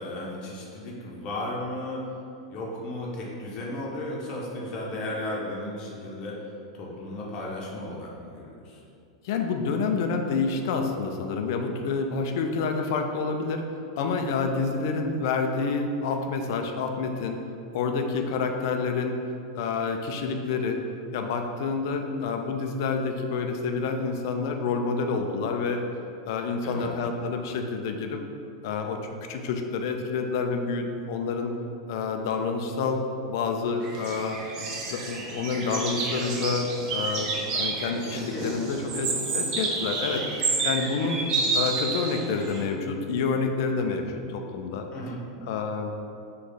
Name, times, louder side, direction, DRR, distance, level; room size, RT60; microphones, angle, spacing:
voice 1, 0.0-2.0 2.5-6.4 6.7-8.8 26.6-26.9 38.1-39.0 44.9-45.2, left 1 dB, 30° left, -4 dB, 0.9 m, -35 dB
voice 2, 9.2-17.4 17.7-19.2 19.6-20.8 21.1-25.8 26.3-28.2 28.6-31.5 31.9-34.4 34.9-41.2 41.5-44.9 45.5-45.9, left 4 dB, 50° left, 4 dB, 0.4 m, -28 dB
sound 1, 33.8-42.6, right 4 dB, 35° right, 0.6 m, -30 dB
6.2 x 2.4 x 3.5 m, 2.5 s
figure-of-eight pair, 90°, 2 cm